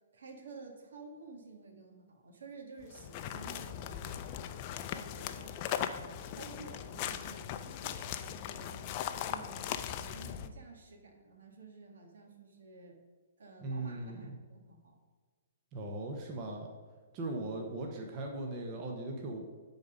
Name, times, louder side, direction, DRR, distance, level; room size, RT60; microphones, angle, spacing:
voice 1, 0.1-4.6 4.9-13.0 13.4-15.0, right 4 dB, 75° right, 2 dB, 1.7 m, -52 dB
sound 1, 2.8-10.5, left 10 dB, 35° left, 0.4 m, -39 dB
voice 2, 13.6-14.4 15.7-16.7 17.1-19.5, right 2 dB, 30° right, 1 dB, 1.0 m, -39 dB
10.5 x 4.1 x 5.1 m, 1.5 s
hypercardioid pair, 155°, 0 cm